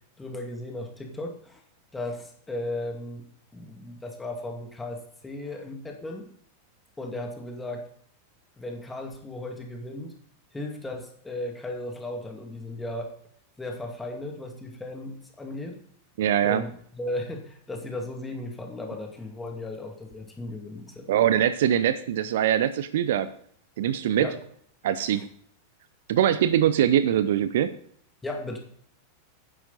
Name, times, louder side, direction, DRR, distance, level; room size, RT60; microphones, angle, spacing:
voice 1, 0.2-1.6 1.9-3.3 3.5-5.0 5.2-6.3 7.0-7.9 8.6-10.1 10.5-13.1 13.6-15.8 16.4-21.3 24.2-24.4 28.2-28.6, left 1 dB, 10° left, 2 dB, 2.2 m, -36 dB
voice 2, 16.2-16.6 21.1-23.3 23.8-24.3 24.8-25.3 26.1-27.7, right 10 dB, 55° right, 13 dB, 0.7 m, -22 dB
11.5 x 9.9 x 4.0 m, 0.62 s
figure-of-eight pair, 90°, 0 cm